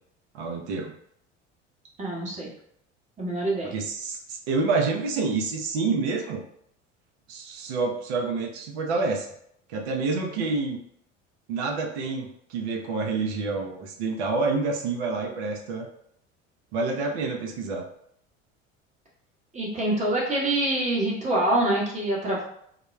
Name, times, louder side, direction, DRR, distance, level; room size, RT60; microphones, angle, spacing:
voice 1, 0.3-0.9 3.6-6.4 7.3-9.3 9.7-10.8 11.5-15.9 16.7-17.9, right 4 dB, 60° right, 1 dB, 0.6 m, -28 dB
voice 2, 2.0-2.5 3.2-3.7 19.5-22.4, right 1 dB, 20° right, -4 dB, 0.9 m, -25 dB
2.2 x 2.1 x 3.0 m, 0.71 s
figure-of-eight pair, 65°, 37 cm